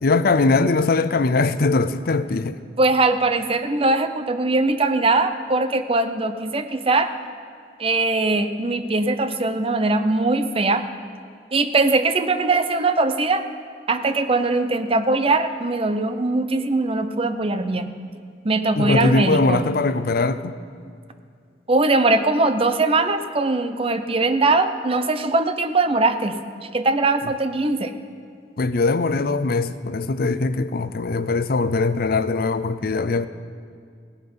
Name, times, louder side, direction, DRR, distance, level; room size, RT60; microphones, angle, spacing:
voice 1, 0.0-2.6 18.8-20.6 28.6-33.3, left 3 dB, 55° left, 13 dB, 0.5 m, -21 dB
voice 2, 2.8-7.1 7.8-10.8 11.5-13.4 13.9-17.9 18.4-19.7 21.7-26.4 26.7-27.9, right 3 dB, 30° right, 9 dB, 0.7 m, -21 dB
17.0 x 11.0 x 5.6 m, 2.3 s
head